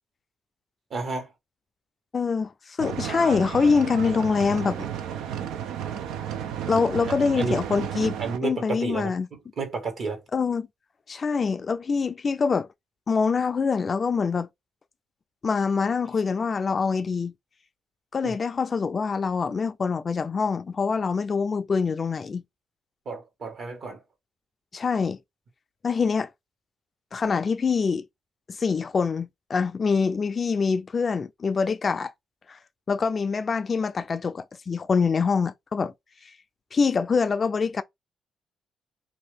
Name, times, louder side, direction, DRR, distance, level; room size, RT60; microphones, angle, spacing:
voice 1, 0.9-1.3 6.7-6.8 7.4-7.6 8.2-9.1 9.6-10.2 18.2-18.3 23.0-24.0, right 4 dB, 55° right, 1.4 m, -31 dB
voice 2, 2.1-4.9 6.7-9.3 10.3-10.7 11.1-12.7 13.1-14.5 15.4-17.3 18.1-22.4 24.7-25.2 25.8-26.3 27.1-28.1 28.5-32.1 32.5-32.6 32.9-35.9 36.7-37.8, left 5 dB, 40° left, 0.3 m, -25 dB
sound 1, 2.8-8.4, right 9 dB, 90° right, 0.4 m, -32 dB
2.7 x 2.4 x 3.3 m
cardioid pair, 90°, 0 cm